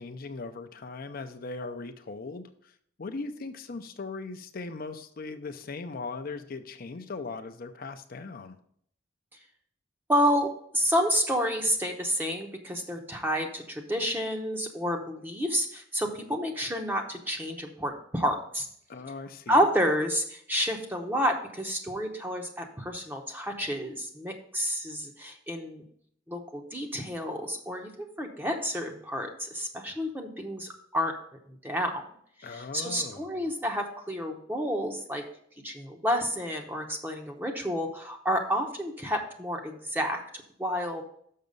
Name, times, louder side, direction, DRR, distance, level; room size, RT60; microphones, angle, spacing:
voice 1, 0.0-8.6 18.9-19.6 32.4-33.6, left 3 dB, 45° left, 8 dB, 0.5 m, -39 dB
voice 2, 10.1-18.7 19.5-25.8 26.3-31.1 31.6-32.0 32.5-35.2 35.6-40.2 40.6-41.0, equal, 10° right, 2 dB, 0.8 m, -29 dB
6.5 x 5.9 x 5.3 m, 0.65 s
head